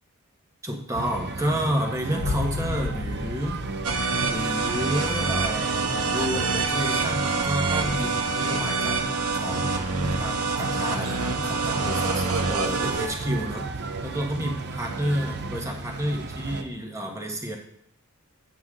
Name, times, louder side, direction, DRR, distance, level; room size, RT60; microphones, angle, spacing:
voice 1, 0.6-3.6 4.3-9.0 9.4-17.6, equal, 15° right, 1 dB, 1.4 m, -30 dB
sound 1, 0.9-16.6, right 3 dB, 50° right, 0.7 m, -34 dB
Boom, 2.2-5.1, left 4 dB, 70° left, 0.6 m, -33 dB
sound 2, 3.8-13.1, right 4 dB, 90° right, 1.1 m, -26 dB
8.4 x 8.1 x 3.7 m, 0.70 s
head